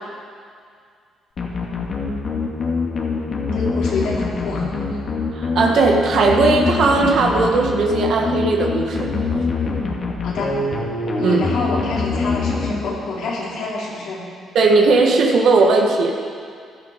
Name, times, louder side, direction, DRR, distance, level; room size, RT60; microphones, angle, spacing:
sound 1, 1.4-13.2, left 4 dB, 50° left, 2.1 m, -24 dB
voice 1, 3.5-4.7 10.2-10.6 11.2-14.2, left 3 dB, 80° left, -5 dB, 3.7 m, -27 dB
voice 2, 5.3-9.1 11.2-11.4 14.5-16.1, right 3 dB, 70° right, 1 dB, 1.5 m, -17 dB
15.0 x 11.0 x 5.1 m, 2.2 s
cardioid pair, 90°, 0 cm